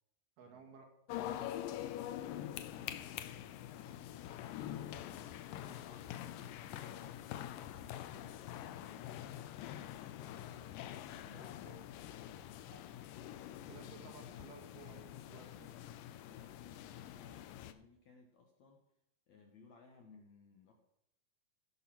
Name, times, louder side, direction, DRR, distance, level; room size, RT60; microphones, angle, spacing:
voice 1, 0.4-0.9 1.3-1.6 11.3-11.7 12.7-12.8 13.2-13.4 13.7-15.7, right 5 dB, 75° right, 1 dB, 3.8 m, -57 dB
sound 1, 1.1-17.7, left 12 dB, 90° left, 2.0 m, -45 dB
voice 2, 2.6-5.1 5.6-9.2 10.2-11.7 16.2-18.8 19.3-20.7, left 4 dB, 65° left, 2 dB, 1.9 m, -62 dB
16.5 x 5.6 x 6.0 m, 0.79 s
omnidirectional pair, 4.6 m